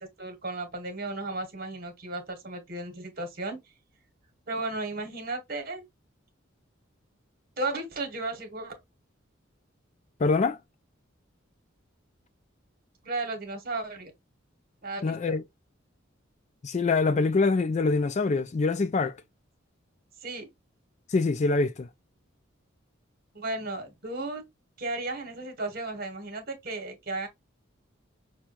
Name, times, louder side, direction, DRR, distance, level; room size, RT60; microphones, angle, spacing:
voice 1, 0.0-3.6 4.5-5.8 7.6-8.7 13.0-14.1 14.8-15.4 20.2-20.5 23.3-24.4 24.8-27.3, right 2 dB, 50° right, 1.3 m, -34 dB
voice 2, 10.2-10.6 15.0-15.4 16.6-19.1 21.1-21.9, left 3 dB, 35° left, 0.4 m, -24 dB
5.9 x 2.3 x 2.5 m
head